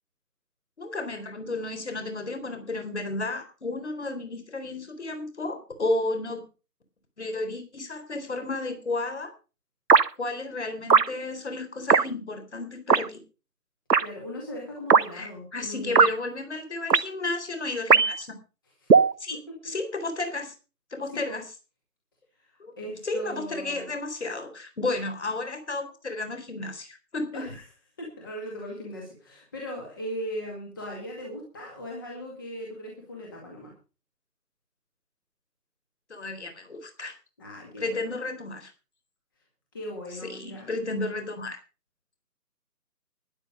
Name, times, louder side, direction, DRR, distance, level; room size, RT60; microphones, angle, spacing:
voice 1, 0.8-6.4 7.2-9.3 10.2-13.2 15.1-18.3 19.2-19.4 19.6-20.5 20.9-21.4 22.6-22.7 23.0-27.5 30.9-31.0 36.1-37.1 37.8-38.7 40.2-41.6, left 2 dB, 45° left, 7 dB, 4.0 m, -32 dB
sound 1, 9.9-10.1 10.9-11.1 11.9-12.1 12.9-13.1 13.9-14.1 14.9-15.0 16.0-16.1 16.9-17.1 17.9-18.2 18.9-19.1, right 5 dB, 80° right, 0.9 m, -17 dB
voice 2, 14.0-16.1 18.8-18.9 19.3-19.4 21.1-21.4 22.4-23.9 27.3-27.6 28.0-33.7 37.4-38.1 39.7-40.7, equal, 15° left, -1 dB, 2.0 m, -38 dB
12.5 x 11.0 x 5.2 m, 0.33 s
figure-of-eight pair, 160°, 48 cm